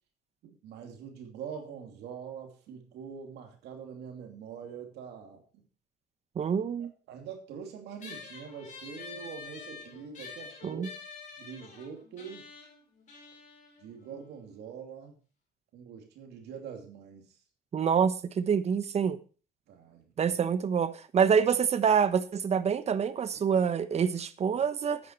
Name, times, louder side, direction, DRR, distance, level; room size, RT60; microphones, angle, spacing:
voice 1, 0.4-5.6 6.4-6.5 6.8-10.9 11.4-12.4 13.8-15.2 15.7-17.4 19.7-20.4, right 7 dB, 80° right, 2.7 m, -44 dB
voice 2, 6.4-6.9 10.6-10.9 17.7-19.2 20.2-25.0, right 7 dB, 40° right, 1.0 m, -26 dB
sound 1, 8.0-14.8, left 5 dB, 45° left, 5.2 m, -47 dB
9.6 x 9.3 x 4.5 m
cardioid pair, 110°, 17 cm